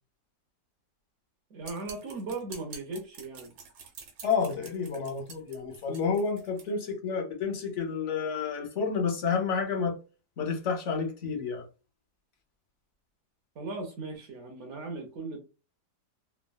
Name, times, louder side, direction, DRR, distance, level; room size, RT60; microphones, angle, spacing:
voice 1, 1.5-3.5 13.6-15.4, right 3 dB, 65° right, 0.7 m, -38 dB
sound 1, 1.6-6.7, right 5 dB, 90° right, 1.5 m, -47 dB
voice 2, 4.2-9.9 10.4-11.6, left 5 dB, 60° left, 0.8 m, -30 dB
3.5 x 2.1 x 2.2 m
omnidirectional pair, 1.9 m